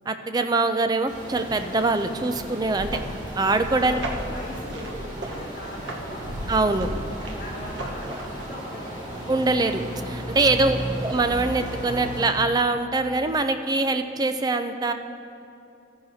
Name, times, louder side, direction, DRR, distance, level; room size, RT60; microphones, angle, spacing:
voice 1, 0.1-3.0 3.4-4.0 6.5-6.9 9.3-14.9, right 3 dB, 20° right, 8 dB, 0.4 m, -23 dB
sound 1, 1.1-12.2, equal, 40° right, 2.2 m, -35 dB
sound 2, 2.4-8.5, right 1 dB, 80° right, 1.1 m, -36 dB
voice 2, 3.5-6.6 7.4-9.0 10.4-10.7, equal, 45° left, -8 dB, 2.7 m, -40 dB
14.0 x 10.5 x 2.7 m, 2.7 s
head